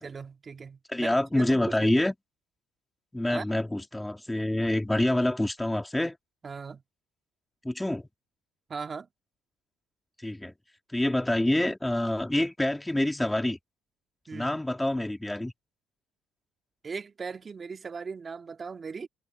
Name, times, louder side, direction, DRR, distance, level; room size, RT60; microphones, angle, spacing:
voice 1, 0.0-1.9 3.3-3.4 6.4-6.8 8.7-9.1 14.3-14.6 16.8-19.1, right 5 dB, 35° right, 2.3 m, -38 dB
voice 2, 0.9-2.1 3.1-6.2 7.6-8.1 10.2-10.5 10.9-13.6 14.3-15.5, left 1 dB, 10° left, 3.1 m, -26 dB
supercardioid pair, 90°, 0 cm